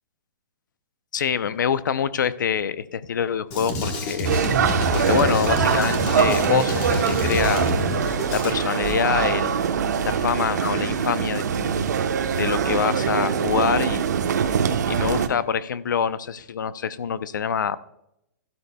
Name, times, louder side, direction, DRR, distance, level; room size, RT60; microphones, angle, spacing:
voice 1, 1.1-4.3 4.9-7.6 8.3-9.5 10.0-11.9 12.4-14.1 14.9-17.8, left 7 dB, 80° left, 15 dB, 0.7 m, -25 dB
Drum kit, 3.5-8.5, left 1 dB, 20° left, 1.3 m, -27 dB
sound 1, 4.2-15.3, right 7 dB, 65° right, 1.0 m, -23 dB
13.0 x 12.0 x 2.3 m, 0.82 s
hypercardioid pair, 175°, 10 cm